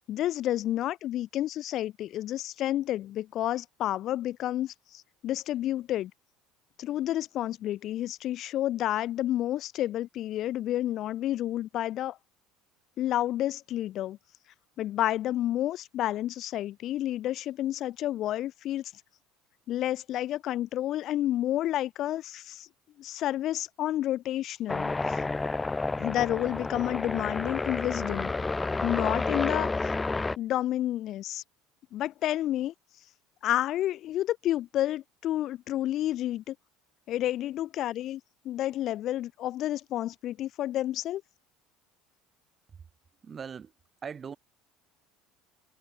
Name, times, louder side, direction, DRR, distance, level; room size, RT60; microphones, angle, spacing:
voice 1, 0.1-6.1 6.8-12.2 13.0-14.2 14.8-18.9 19.7-22.7 23.0-25.2 26.0-28.3 28.8-29.9 30.4-31.4 31.9-32.7 33.4-36.5 37.1-41.2, left 13 dB, 40° left, 0.4 m, -30 dB
sound 1, 24.7-30.4, left 3 dB, 10° left, 1.0 m, -30 dB
voice 2, 43.2-43.7 44.0-44.4, right 6 dB, 20° right, 1.3 m, -39 dB
cardioid pair, 170°, 0 cm